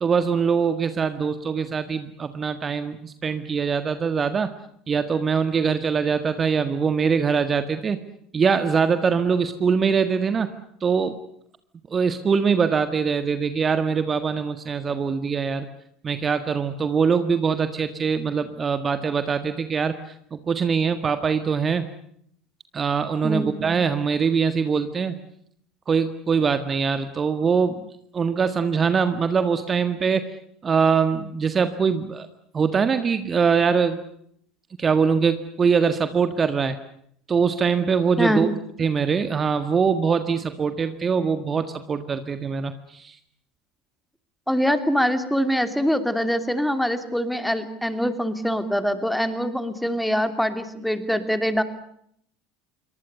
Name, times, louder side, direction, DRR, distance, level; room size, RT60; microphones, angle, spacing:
voice 1, 0.0-4.5 4.9-8.0 8.3-10.5 10.8-11.2 11.9-15.7 16.0-21.9 22.7-25.2 25.9-27.9 28.1-30.2 30.6-32.3 32.5-34.0 34.8-36.8 37.3-38.5 38.8-43.2, right 6 dB, 25° right, 10 dB, 1.6 m, -23 dB
voice 2, 23.2-23.6 38.2-38.6 44.5-51.6, equal, ahead, 9 dB, 2.8 m, -24 dB
27.5 x 23.5 x 6.8 m, 0.69 s
figure-of-eight pair, 70°, 0 cm